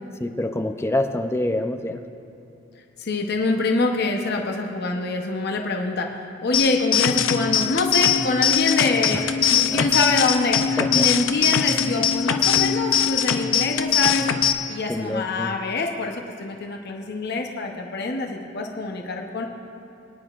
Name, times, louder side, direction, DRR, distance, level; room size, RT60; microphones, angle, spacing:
voice 1, 0.2-2.0 9.7-9.9 10.8-11.1 14.9-15.5, left 1 dB, 15° left, 6 dB, 0.5 m, -26 dB
voice 2, 3.0-6.2 6.4-10.6 10.9-14.3 14.7-19.5, left 3 dB, 55° left, 2 dB, 0.9 m, -25 dB
sound 1, 6.5-14.5, left 7 dB, 85° left, 0.6 m, -21 dB
23.0 x 9.9 x 2.5 m, 2.8 s
head